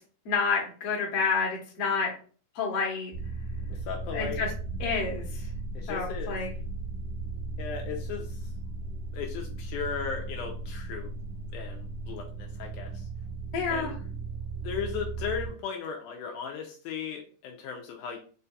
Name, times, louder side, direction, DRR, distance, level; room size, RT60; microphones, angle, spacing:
voice 1, 0.3-2.1 2.6-3.1 4.1-4.5 4.8-5.5 5.9-6.5 13.5-13.9, left 5 dB, 60° left, -1 dB, 1.8 m, -29 dB
sound 1, 3.1-15.5, right 3 dB, 85° right, 2.2 m, -36 dB
voice 2, 3.7-4.4 5.8-6.4 7.6-8.5 9.1-11.1 11.5-13.1 13.7-14.0 14.6-18.2, left 6 dB, 80° left, 2 dB, 2.0 m, -36 dB
5.5 x 2.7 x 2.2 m, 0.41 s
omnidirectional pair, 3.7 m